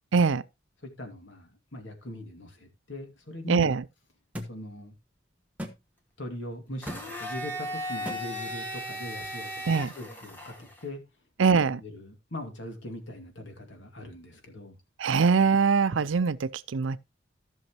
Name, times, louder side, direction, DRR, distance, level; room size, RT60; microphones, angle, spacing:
voice 1, 0.1-0.4 3.5-3.8 9.7-9.9 11.4-11.8 15.0-17.0, right 5 dB, 85° right, 0.5 m, -23 dB
voice 2, 0.8-3.7 4.5-4.9 6.2-11.0 11.8-14.7, left 1 dB, 70° left, 2.3 m, -41 dB
sound 1, 4.3-4.5 5.6-5.8 6.9-7.0 8.1-8.2, equal, 5° right, 1.2 m, -36 dB
Domestic sounds home sounds, 6.8-10.8, equal, 10° left, 1.9 m, -37 dB
14.5 x 6.3 x 3.0 m
head